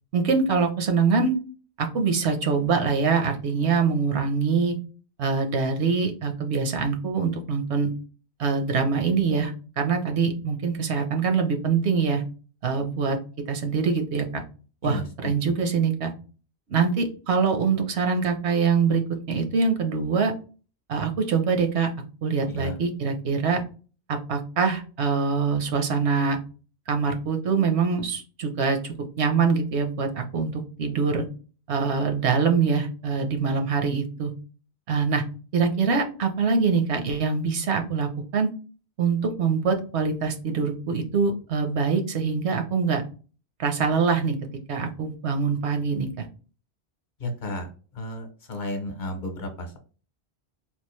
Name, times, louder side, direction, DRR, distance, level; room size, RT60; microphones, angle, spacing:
voice 1, 0.1-1.3 1.8-4.8 5.2-7.9 8.4-12.2 12.6-13.2 13.5-14.4 14.8-16.1 16.7-20.3 20.9-21.9 22.2-23.6 24.1-26.4 26.9-31.2 31.7-34.3 34.9-35.2 35.5-38.5 39.0-43.0 43.6-44.4 44.7-46.3, right 5 dB, 85° right, 5 dB, 1.0 m, -24 dB
voice 2, 14.8-15.3 22.5-22.8 47.2-47.7 48.0-49.8, left 1 dB, 50° left, 5 dB, 0.9 m, -33 dB
3.7 x 2.5 x 3.0 m, 0.37 s
omnidirectional pair, 1.1 m